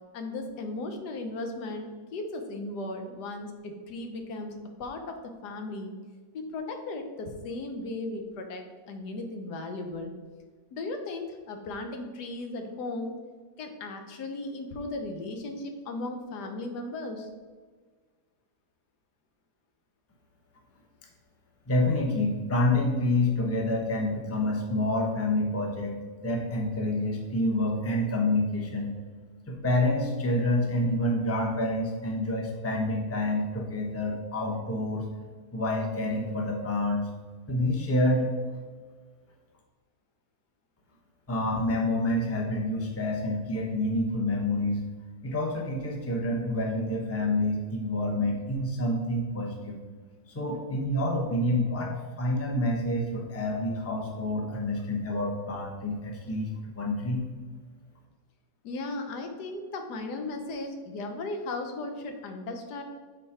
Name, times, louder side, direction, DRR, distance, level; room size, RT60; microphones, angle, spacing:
voice 1, 0.1-5.9 6.3-10.1 10.7-13.1 13.6-17.3 58.6-62.8, left 2 dB, 85° left, 5 dB, 1.4 m, -36 dB
voice 2, 21.7-26.0 26.2-29.0 29.5-35.1 35.5-37.1 37.5-38.3 41.3-44.8 45.2-49.8 50.3-57.2, left 1 dB, 15° left, 1 dB, 0.6 m, -28 dB
6.6 x 4.1 x 4.3 m, 1.5 s
omnidirectional pair, 1.7 m